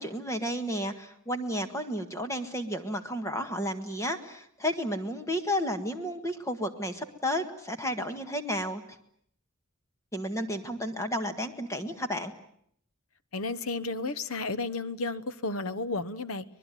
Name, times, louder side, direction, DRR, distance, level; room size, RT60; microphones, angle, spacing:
voice 1, 0.0-8.8 10.1-12.3, equal, 15° left, 6 dB, 1.6 m, -32 dB
voice 2, 13.3-16.4, left 3 dB, 85° left, 15 dB, 1.2 m, -32 dB
24.5 x 20.5 x 9.2 m, 0.68 s
head